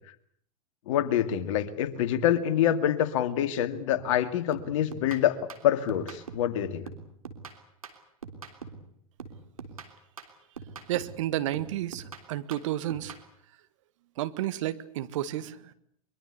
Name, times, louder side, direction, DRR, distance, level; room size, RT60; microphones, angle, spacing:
voice 1, 0.9-5.4 5.6-6.9, left 10 dB, 60° left, 10 dB, 2.3 m, -26 dB
sound 1, 3.9-4.2 4.5-6.6 6.9-8.9 9.2-11.2 11.5-13.3, right 5 dB, 85° right, 3.4 m, -44 dB
voice 2, 10.9-13.2 14.2-15.7, right 13 dB, 65° right, 13 dB, 1.8 m, -31 dB
23.5 x 23.0 x 8.3 m, 0.66 s
hypercardioid pair, 95°, 18 cm